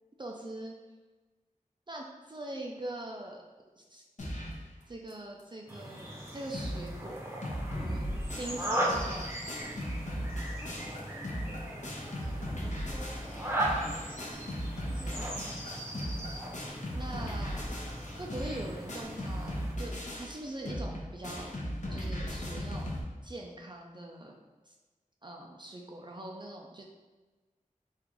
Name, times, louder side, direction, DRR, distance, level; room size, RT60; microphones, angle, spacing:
voice 1, 0.2-0.8 1.9-3.4 3.8-4.0 4.9-7.2 7.7-9.3 14.8-15.8 16.9-17.7 18.2-21.5 21.9-23.0 23.2-24.4 24.7-24.8 25.2-26.8, right 1 dB, 35° right, -1 dB, 0.4 m, -43 dB
sound 1, 4.2-4.7 5.1-5.2 5.4-5.5 6.0-6.1 6.3-6.9 7.2-23.0, equal, 60° left, 0.6 m, -37 dB
sound 2, 5.7-19.7, right 1 dB, 15° right, 0.7 m, -38 dB
voice 2, 10.6-14.3, equal, 25° left, -3 dB, 0.8 m, -51 dB
3.6 x 2.4 x 3.0 m, 1.2 s
wide cardioid pair, 65°, 14 cm